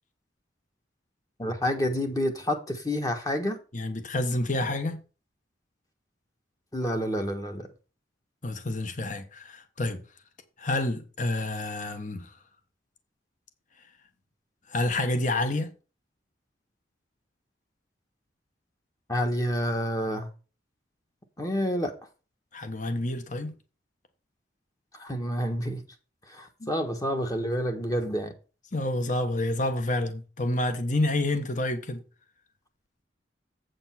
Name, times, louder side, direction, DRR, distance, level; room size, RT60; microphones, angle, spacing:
voice 1, 1.4-3.6 6.7-7.7 19.1-20.3 21.4-21.9 25.0-25.8 26.3-28.3, equal, 20° left, 1.3 m, -28 dB
voice 2, 3.7-5.0 8.4-10.0 10.6-12.3 14.7-15.7 22.5-23.5 26.6-26.7 28.7-32.0, left 1 dB, 40° left, 1.3 m, -28 dB
8.2 x 5.3 x 5.8 m
head